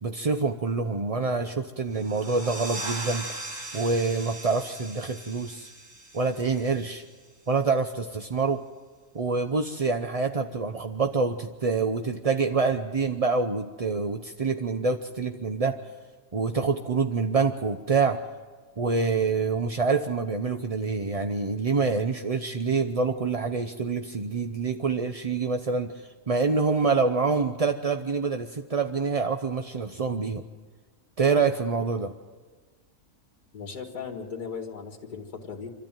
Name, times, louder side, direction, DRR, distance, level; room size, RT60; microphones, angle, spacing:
voice 1, 0.0-3.3 3.7-5.7 6.1-7.0 7.5-8.6 9.1-15.8 16.3-18.2 18.8-30.4 31.2-32.1, right 4 dB, 40° right, 6 dB, 0.5 m, -26 dB
sound 1, 1.9-7.3, right 2 dB, 70° right, 3.0 m, -39 dB
voice 2, 33.5-35.7, left 6 dB, 70° left, 1 dB, 2.3 m, -37 dB
26.5 x 13.5 x 9.0 m, 1.5 s
omnidirectional pair, 1.7 m